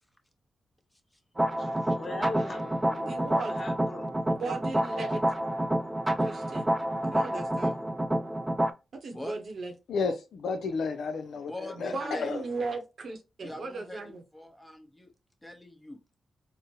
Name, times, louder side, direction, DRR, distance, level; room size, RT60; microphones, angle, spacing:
sound 1, 1.4-8.7, right 1 dB, 20° right, 0.4 m, -28 dB
voice 1, 1.6-3.1 3.5-4.1, left 3 dB, 45° left, 1.1 m, -40 dB
voice 2, 3.0-3.6 4.3-5.3 6.2-6.7 7.0-7.8 9.0-9.7 11.9-14.2, right 3 dB, 65° right, 0.8 m, -37 dB
voice 3, 9.9-12.4, left 4 dB, 75° left, 0.4 m, -32 dB
voice 4, 11.5-12.3 13.4-15.1 15.4-16.0, left 1 dB, 10° left, 0.8 m, -43 dB
3.7 x 2.0 x 2.7 m
supercardioid pair, 45°, 0 cm